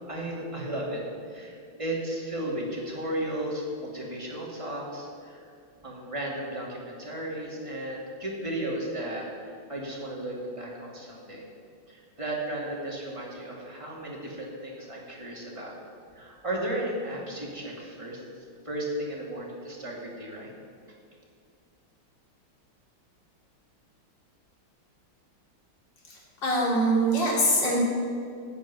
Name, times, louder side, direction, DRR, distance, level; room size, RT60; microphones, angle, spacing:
voice 1, 0.1-1.0 1.3-5.4 5.8-11.4 11.9-15.7 16.1-18.2 18.6-20.5, right 1 dB, 15° right, -3 dB, 2.4 m, -34 dB
voice 2, 26.1-27.8, right 1 dB, 55° left, -3 dB, 3.4 m, -24 dB
13.5 x 6.5 x 9.1 m, 2.3 s
omnidirectional pair, 2.3 m